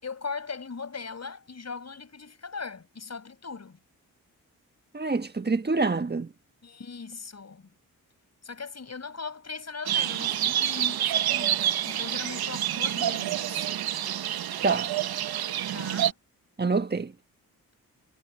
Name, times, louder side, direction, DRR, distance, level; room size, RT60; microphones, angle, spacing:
voice 1, 0.0-3.8 6.6-7.7 8.4-13.7 15.7-16.2, left 5 dB, 45° left, 5.7 m, -39 dB
voice 2, 4.9-6.3 14.6-14.9 16.6-17.1, right 3 dB, 25° right, 1.5 m, -26 dB
sound 1, 9.9-16.1, right 11 dB, 80° right, 1.1 m, -28 dB
cardioid pair, 60°, 36 cm